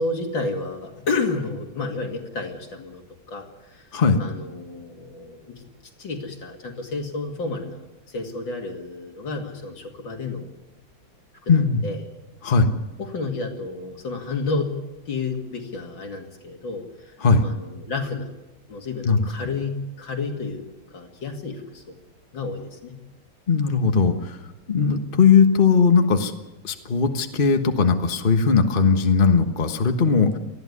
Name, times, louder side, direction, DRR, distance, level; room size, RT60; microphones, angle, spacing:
voice 1, 0.0-3.0 3.3-3.9 4.2-5.7 6.0-10.5 11.4-12.0 13.0-14.7 15.1-17.1 17.4-18.3 18.7-20.6 20.9-21.9 22.3-23.0, left 3 dB, 80° left, 3 dB, 3.2 m, -31 dB
voice 2, 11.5-11.8 12.4-12.7 17.2-17.5 19.0-19.2 23.5-24.4 24.7-26.3 26.6-30.4, left 5 dB, 30° left, 6 dB, 1.4 m, -18 dB
20.0 x 14.5 x 9.7 m, 1.0 s
omnidirectional pair, 2.0 m